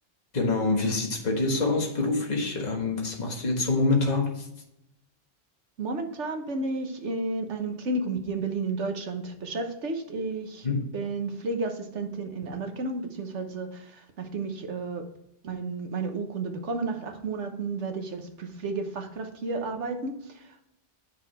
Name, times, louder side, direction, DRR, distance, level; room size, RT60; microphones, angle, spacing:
voice 1, 0.3-4.5 10.6-10.9, left 3 dB, 35° left, 1 dB, 1.5 m, -26 dB
voice 2, 5.8-10.7 10.9-15.0 15.4-20.6, right 3 dB, 80° right, 5 dB, 1.4 m, -32 dB
8.3 x 6.2 x 4.2 m, 0.81 s
omnidirectional pair, 1.2 m